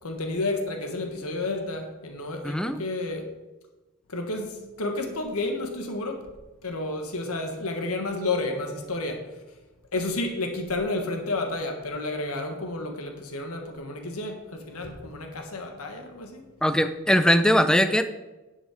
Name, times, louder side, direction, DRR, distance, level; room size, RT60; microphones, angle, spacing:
voice 1, 0.0-3.2 4.1-6.2 6.6-9.2 9.9-16.4, left 2 dB, 85° left, 4 dB, 1.5 m, -31 dB
voice 2, 2.4-2.8 16.6-18.0, equal, 5° left, 10 dB, 0.4 m, -21 dB
10.5 x 7.3 x 4.9 m, 1.1 s
head